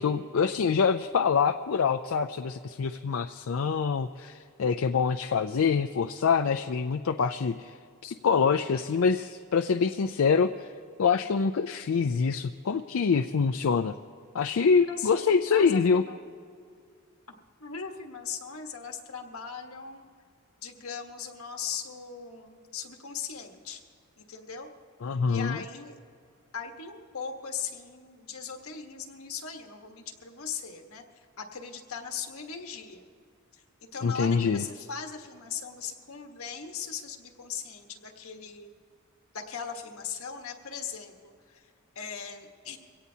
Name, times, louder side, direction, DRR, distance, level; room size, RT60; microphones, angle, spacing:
voice 1, 0.0-7.8 8.0-10.7 11.0-13.9 14.3-16.0 25.0-25.6 34.0-34.6, left 5 dB, 70° left, 7 dB, 0.4 m, -25 dB
voice 2, 14.8-16.2 17.6-20.0 20.6-23.8 24.2-24.7 25.2-26.0 26.5-31.0 31.4-33.1 33.5-38.7 39.3-41.6 41.9-42.8, left 6 dB, 85° left, 4 dB, 1.4 m, -39 dB
24.0 x 17.0 x 2.8 m, 2.3 s
head